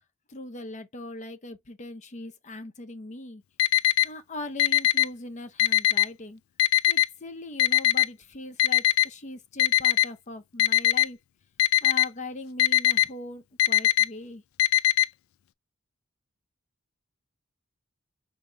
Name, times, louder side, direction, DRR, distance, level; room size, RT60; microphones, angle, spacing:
voice 1, 0.3-3.4 4.0-6.4 6.9-11.2 11.8-14.4, left 2 dB, 35° left, 0.7 m, -40 dB
Alarm, 3.6-4.0 4.6-5.0 5.6-6.0 6.6-7.0 7.6-8.0 8.6-9.0 9.6-10.0 10.6-11.0 11.6-12.0 12.6-13.1 13.6-14.0 14.6-15.0, left 13 dB, 70° left, 0.3 m, -20 dB
5.2 x 2.8 x 3.3 m
head